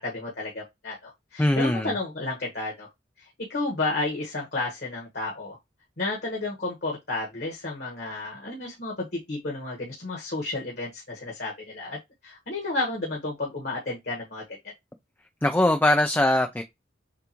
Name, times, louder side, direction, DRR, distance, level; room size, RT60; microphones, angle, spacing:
voice 1, 0.0-2.9 3.4-5.6 6.0-14.4, left 2 dB, 55° left, 1.5 m, -32 dB
voice 2, 1.4-1.9 15.4-16.6, left 1 dB, 10° left, 0.4 m, -21 dB
6.8 x 2.6 x 2.9 m
head